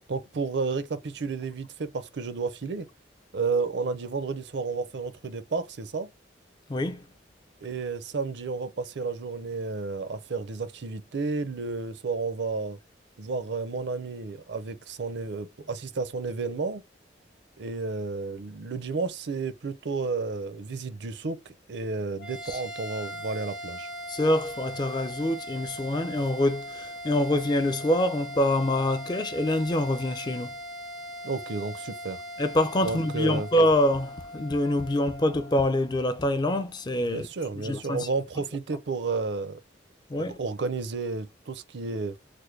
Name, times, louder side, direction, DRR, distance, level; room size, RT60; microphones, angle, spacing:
voice 1, 0.1-2.9 3.3-6.1 7.6-12.8 13.2-16.8 17.6-21.4 21.7-23.9 31.2-32.2 32.8-33.5 37.1-39.6 40.2-42.2, right 4 dB, 60° right, 0.5 m, -31 dB
voice 2, 6.7-7.0 22.4-22.6 24.1-30.5 32.4-37.3 37.6-38.1 40.1-40.4, left 1 dB, 20° left, 0.3 m, -25 dB
sound 1, 22.2-36.8, equal, 75° left, 0.8 m, -40 dB
3.4 x 2.1 x 3.1 m
head